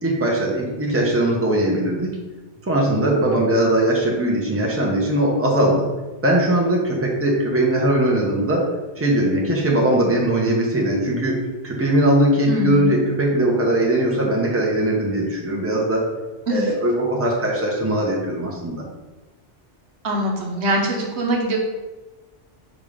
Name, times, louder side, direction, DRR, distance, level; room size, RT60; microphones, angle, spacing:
voice 1, 0.0-2.2 2.7-5.9 6.2-8.7 9.0-16.1 16.5-18.8, right 1 dB, 10° right, -2 dB, 1.0 m, -20 dB
voice 2, 12.5-12.9 16.5-16.7 20.0-21.6, equal, 65° right, 0 dB, 1.2 m, -22 dB
5.2 x 3.7 x 5.0 m, 1.2 s
omnidirectional pair, 1.2 m